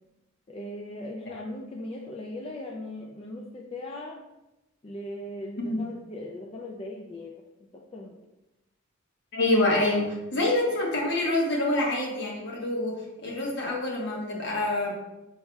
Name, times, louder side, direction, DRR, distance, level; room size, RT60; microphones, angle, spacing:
voice 1, 0.5-4.2 4.8-7.4 7.7-8.2, left 1 dB, 30° left, -1 dB, 0.4 m, -39 dB
voice 2, 9.3-13.0 13.2-14.9, left 2 dB, 60° left, -2 dB, 1.2 m, -26 dB
5.5 x 4.2 x 2.3 m, 0.98 s
head